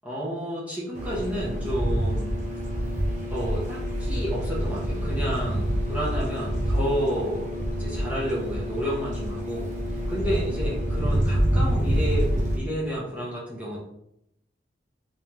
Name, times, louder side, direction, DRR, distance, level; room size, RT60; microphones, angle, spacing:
voice 1, 0.0-2.3 3.3-7.5 7.8-9.7 10.1-13.8, equal, 10° right, -7 dB, 0.8 m, -31 dB
sound 1, 0.9-12.6, equal, 40° right, 0.8 m, -27 dB
3.5 x 3.4 x 3.0 m, 0.79 s
head